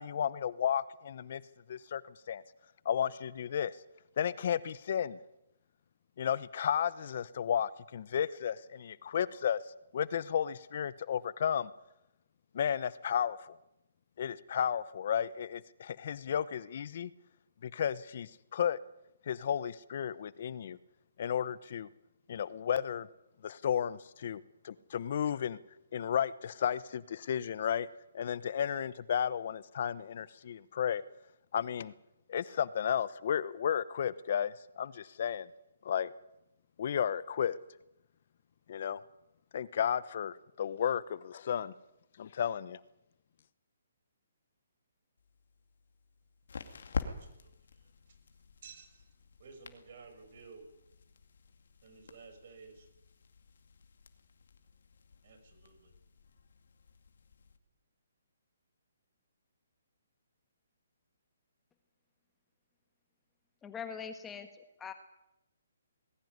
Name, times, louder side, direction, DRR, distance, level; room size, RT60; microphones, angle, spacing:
voice 1, 0.0-1.4 1.7-2.4 2.8-3.8 4.2-5.2 6.2-9.6 9.9-11.7 12.5-13.6 14.2-17.1 17.6-18.8 19.3-20.8 21.2-21.9 22.3-23.1 23.4-25.6 25.9-27.9 28.1-31.0 31.5-31.9 32.3-35.5 35.8-36.1 36.8-37.6 38.7-39.0 39.5-41.7 42.2-42.8, left 8 dB, 55° left, 18 dB, 0.9 m, -33 dB
sound 1, 45.2-57.6, left 5 dB, 70° left, 2.3 m, -47 dB
voice 2, 46.9-47.5 47.8-47.9 48.6-49.1 49.4-50.6 51.8-52.9 55.2-55.9, right 5 dB, 55° right, 7 dB, 6.1 m, -54 dB
voice 3, 63.6-64.5 64.8-64.9, left 6 dB, 10° left, 7 dB, 1.5 m, -41 dB
20.0 x 16.5 x 9.5 m, 0.87 s
hypercardioid pair, 155°, 0 cm